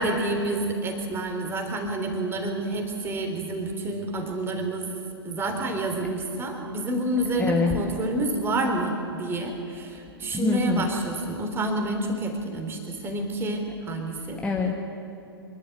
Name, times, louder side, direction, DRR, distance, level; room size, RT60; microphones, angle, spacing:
voice 1, 0.0-4.9 5.2-14.4, right 1 dB, 15° right, 3 dB, 3.4 m, -28 dB
voice 2, 7.4-7.8 10.3-10.9 14.4-14.7, left 4 dB, 10° left, 0 dB, 1.7 m, -24 dB
25.0 x 12.0 x 9.2 m, 2.9 s
figure-of-eight pair, 110°, 13 cm